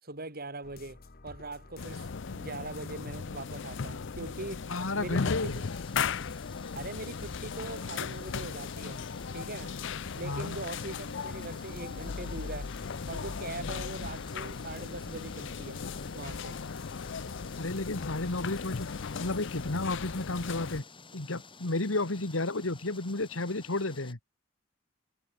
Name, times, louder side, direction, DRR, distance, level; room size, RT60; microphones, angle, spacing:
voice 1, 0.0-4.7 4.9-5.6 6.7-9.0 9.3-9.8 10.2-12.7 13.1-15.8 16.1-16.6, right 2 dB, 50° right, 5.0 m, -41 dB
sound 1, 0.6-20.2, left 2 dB, 50° left, 1.3 m, -50 dB
sound 2, 1.8-20.8, left 5 dB, 65° left, 0.6 m, -37 dB
voice 2, 4.7-5.6 10.2-10.6 17.6-18.9 19.2-20.8 21.1-24.2, left 2 dB, 85° left, 2.0 m, -32 dB
sound 3, 5.3-24.1, left 4 dB, 25° left, 3.6 m, -53 dB
head